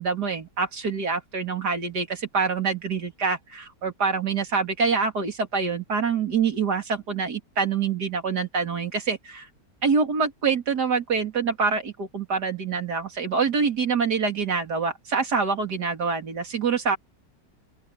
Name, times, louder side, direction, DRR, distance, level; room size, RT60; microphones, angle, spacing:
voice 1, 0.0-9.5 9.8-17.0, right 5 dB, 70° right, 3.2 m, -26 dB
open air
omnidirectional pair, 1.8 m